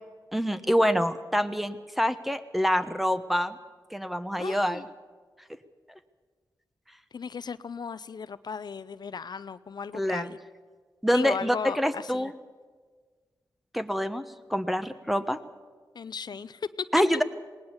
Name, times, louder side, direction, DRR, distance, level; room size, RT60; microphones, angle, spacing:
voice 1, 0.3-3.6 3.9-4.8 9.9-10.3 11.0-12.3 13.7-14.2 14.5-15.4 16.9-17.2, equal, ahead, 11 dB, 1.2 m, -26 dB
voice 2, 4.4-4.8 7.1-10.4 11.1-12.3 15.9-16.7, left 6 dB, 65° left, 15 dB, 0.6 m, -36 dB
19.5 x 19.0 x 7.1 m, 1.5 s
cardioid pair, 70°, 8 cm